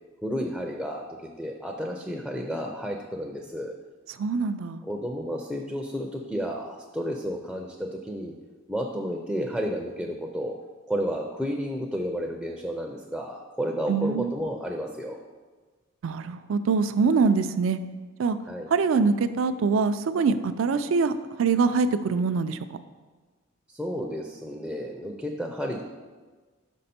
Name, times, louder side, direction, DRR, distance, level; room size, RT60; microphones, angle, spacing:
voice 1, 0.2-3.7 4.8-8.3 8.7-10.5 10.9-15.2 18.5-18.7 23.7-25.8, equal, ahead, 1 dB, 0.4 m, -32 dB
voice 2, 4.2-4.8 13.9-14.4 16.0-17.8 18.2-18.4 18.7-21.1 21.4-22.6, right 4 dB, 70° right, 11 dB, 0.4 m, -24 dB
5.9 x 5.4 x 4.2 m, 1.3 s
head